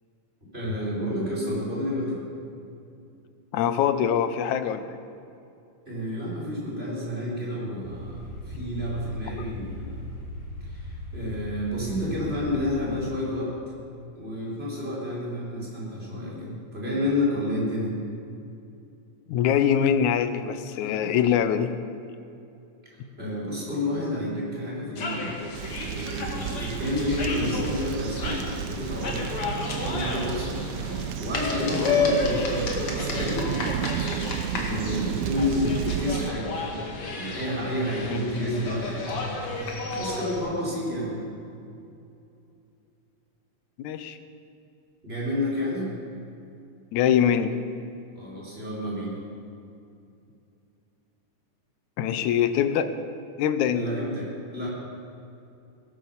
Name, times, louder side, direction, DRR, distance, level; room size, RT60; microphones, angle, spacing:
voice 1, 0.5-2.2 5.9-10.0 10.6-13.5 14.2-17.9 23.2-25.3 25.8-29.3 29.7-33.5 33.9-34.2 34.5-36.9 37.1-39.2 39.9-41.3 45.0-45.9 48.1-49.2 53.7-54.7, left 1 dB, 20° right, -6 dB, 4.9 m, -30 dB
voice 2, 3.5-5.0 19.3-21.7 38.1-38.2 43.8-44.2 46.9-47.6 52.0-52.9 53.4-53.8, left 9 dB, 85° left, 10 dB, 2.2 m, -23 dB
sound 1, 7.8-12.8, left 2 dB, 65° left, 4.4 m, -38 dB
sound 2, 25.0-40.4, left 3 dB, 50° left, 2.8 m, -32 dB
sound 3, 25.5-36.3, right 10 dB, 90° right, 2.0 m, -32 dB
18.0 x 11.5 x 7.2 m, 2.6 s
omnidirectional pair, 3.4 m